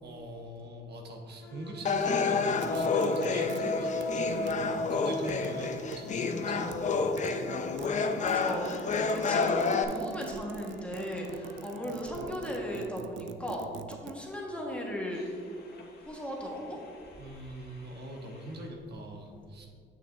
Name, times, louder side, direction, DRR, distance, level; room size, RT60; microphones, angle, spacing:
voice 1, 0.0-7.4 17.2-19.7, right 1 dB, 55° right, 1 dB, 1.0 m, -42 dB
sound 1, 1.4-12.3 15.1-18.7, equal, 55° left, 1.3 m, -51 dB
sound 2, 1.9-9.8, left 4 dB, 40° left, 0.5 m, -29 dB
sound 3, 2.5-3.6 3.9-4.5 5.1-5.5 5.9-6.0 6.3-6.8 7.1-7.4 7.6-14.1, right 8 dB, 75° right, 0.4 m, -44 dB
voice 2, 7.8-15.6 16.0-16.8, left 1 dB, 5° left, -2 dB, 1.4 m, -37 dB
8.5 x 6.5 x 2.6 m, 2.3 s
cardioid pair, 90°, 20 cm